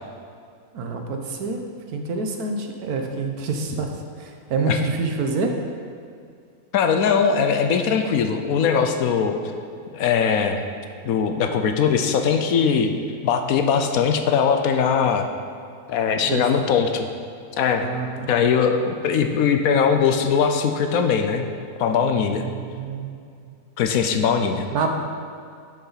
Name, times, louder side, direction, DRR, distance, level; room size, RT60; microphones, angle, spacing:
voice 1, 0.7-1.6 1.9-3.9 4.2-5.6 16.2-16.4 17.8-18.3 22.3-23.2 24.7-24.9, right 4 dB, 80° right, 3 dB, 1.4 m, -27 dB
voice 2, 6.7-9.4 9.9-10.6 11.0-12.9 13.2-15.3 15.9-17.1 17.6-17.9 18.3-21.5 21.8-22.4 23.8-24.6, left 6 dB, 75° left, 6 dB, 1.1 m, -20 dB
10.0 x 6.9 x 4.0 m, 2.3 s
omnidirectional pair, 1.6 m